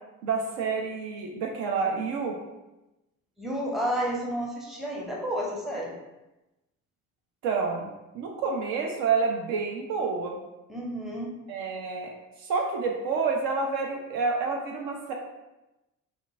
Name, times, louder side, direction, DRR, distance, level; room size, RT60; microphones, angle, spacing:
voice 1, 0.2-2.4 7.4-10.4 11.5-12.1 12.4-15.1, right 4 dB, 60° right, 1 dB, 0.5 m, -28 dB
voice 2, 3.4-6.0 10.7-11.3, equal, ahead, -2 dB, 0.6 m, -31 dB
2.9 x 2.4 x 2.4 m, 1.0 s
figure-of-eight pair, 45°, 42 cm